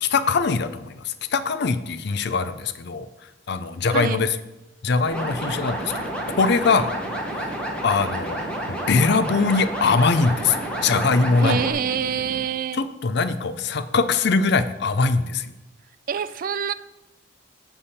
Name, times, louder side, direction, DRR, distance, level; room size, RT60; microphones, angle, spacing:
voice 1, 0.0-3.1 3.5-4.4 4.8-6.9 7.3-7.5 7.8-8.4 8.9-11.6 12.7-15.5, left 4 dB, 60° left, 12 dB, 0.5 m, -22 dB
sound 1, 5.0-12.4, right 2 dB, 60° right, 0.9 m, -38 dB
sound 2, 5.1-11.7, equal, 5° left, 1.3 m, -30 dB
voice 2, 11.4-12.8 16.1-16.7, right 7 dB, 45° right, 13 dB, 0.3 m, -26 dB
9.7 x 3.5 x 7.1 m, 1.0 s
head